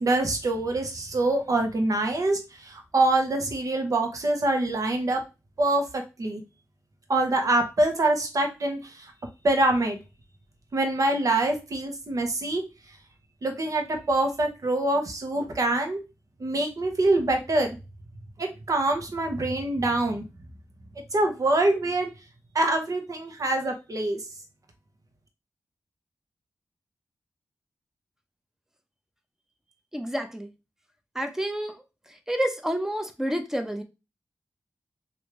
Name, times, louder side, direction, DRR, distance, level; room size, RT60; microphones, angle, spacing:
voice 1, 0.0-5.2 5.6-6.4 7.1-9.1 9.4-10.0 10.7-12.6 13.4-16.0 16.4-17.8 18.4-20.2 21.1-22.1 22.5-24.2, right 2 dB, 60° right, 4 dB, 1.0 m, -25 dB
voice 2, 29.9-30.5 31.1-31.8 32.1-33.8, equal, 5° right, 6 dB, 0.8 m, -29 dB
3.2 x 2.7 x 3.1 m, 0.27 s
cardioid pair, 45°, 6 cm